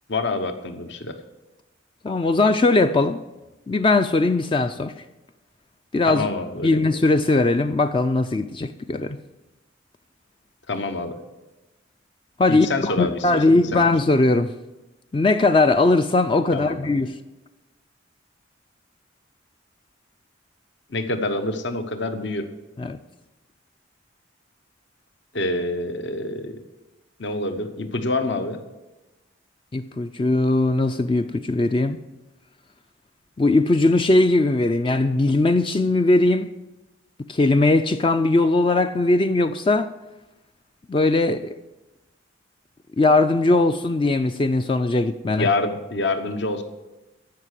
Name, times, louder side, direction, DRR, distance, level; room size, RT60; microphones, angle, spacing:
voice 1, 0.1-1.2 6.0-6.8 10.7-11.2 12.5-13.8 16.5-16.9 20.9-22.5 25.3-26.6 27.2-28.6 45.3-46.6, left 2 dB, 65° left, 1.0 m, -26 dB
voice 2, 2.0-3.2 3.7-5.0 5.9-6.3 6.6-9.2 12.4-14.5 15.1-17.2 22.8-23.0 29.7-32.0 33.4-36.5 37.3-39.9 40.9-41.6 43.0-45.5, left 2 dB, 25° left, 0.3 m, -19 dB
14.5 x 5.7 x 8.2 m
head